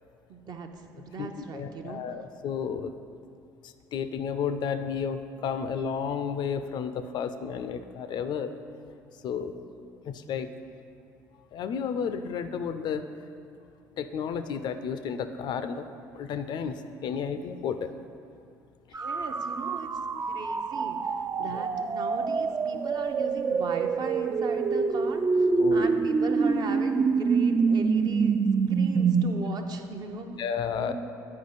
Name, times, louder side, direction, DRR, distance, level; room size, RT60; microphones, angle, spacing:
voice 1, 0.3-2.0 18.9-19.9 20.3-21.0 21.4-28.4 28.7-30.3 30.8-30.9, right 3 dB, 45° right, 4 dB, 0.7 m, -37 dB
voice 2, 1.2-2.9 3.6-8.5 9.2-9.6 10.1-10.5 11.5-13.1 14.0-15.8 16.1-17.9 21.4-21.6 25.6-25.9 30.4-30.9, left 7 dB, 50° left, 10 dB, 0.4 m, -32 dB
sound 1, 18.9-29.3, right 5 dB, 25° right, 0.3 m, -26 dB
9.6 x 4.7 x 4.0 m, 2.4 s
hypercardioid pair, 60°, 10 cm